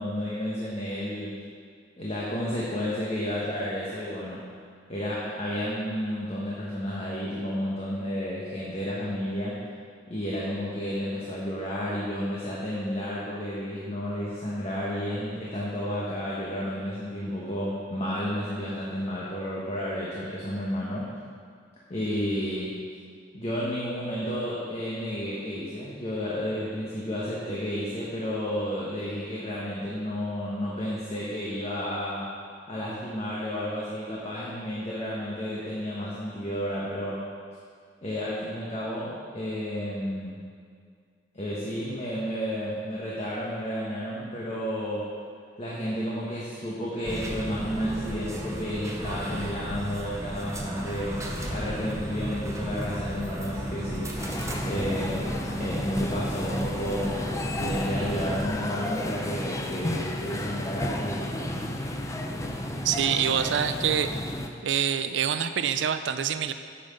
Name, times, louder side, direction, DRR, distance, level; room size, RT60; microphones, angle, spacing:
voice 1, 0.0-1.3 2.0-4.4 4.9-9.6 10.1-21.1 21.9-22.7 23.3-32.3 32.7-37.2 38.0-40.4 41.3-45.1 45.6-51.2 51.5-54.1 54.6-57.2 57.5-61.6, equal, 35° left, -6 dB, 1.2 m, -31 dB
sound 1, 47.0-58.5, equal, 15° right, 0.8 m, -34 dB
sound 2, 54.2-64.5, left 1 dB, 15° left, 0.5 m, -32 dB
voice 2, 62.8-64.1 64.6-66.5, right 8 dB, 75° right, 10 dB, 0.4 m, -26 dB
8.7 x 5.7 x 5.3 m, 2.1 s
head